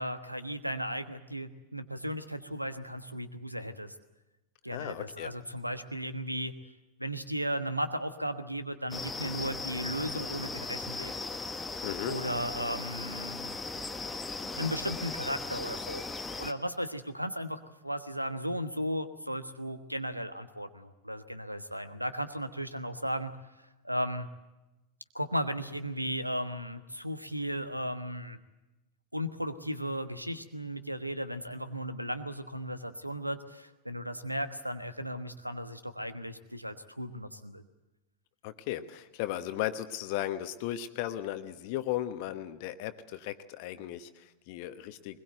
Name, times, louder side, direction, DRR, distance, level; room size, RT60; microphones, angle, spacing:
voice 1, 0.0-3.9 4.6-6.5 7.0-11.1 12.0-13.6 14.5-16.1 16.4-23.3 23.6-24.3 25.1-28.4 29.1-37.6, equal, 90° right, 11 dB, 1.3 m, -35 dB
voice 2, 4.7-5.3 11.8-12.2 38.4-45.2, left 13 dB, 45° left, 10 dB, 1.2 m, -36 dB
sound 1, 8.9-16.5, left 3 dB, 10° left, 1.4 m, -38 dB
21.5 x 21.0 x 8.0 m, 1.1 s
figure-of-eight pair, 90°, 0 cm